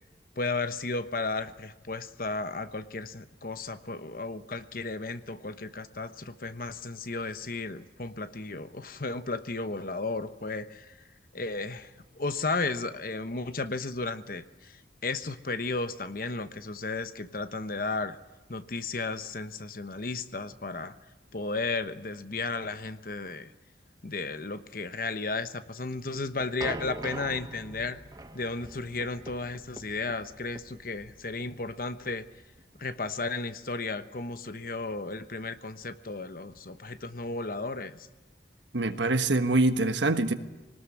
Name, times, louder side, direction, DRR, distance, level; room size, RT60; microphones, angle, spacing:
voice 1, 0.4-11.0 11.3-18.2 18.5-20.9 21.3-23.5 24.0-28.0 28.3-32.3 32.8-38.1, left 3 dB, 50° left, 11 dB, 1.0 m, -34 dB
sound 1, 25.9-32.8, right 2 dB, 25° right, 1.2 m, -43 dB
voice 2, 38.7-40.3, right 2 dB, 85° right, 9 dB, 1.4 m, -24 dB
22.5 x 19.0 x 9.7 m, 1.1 s
head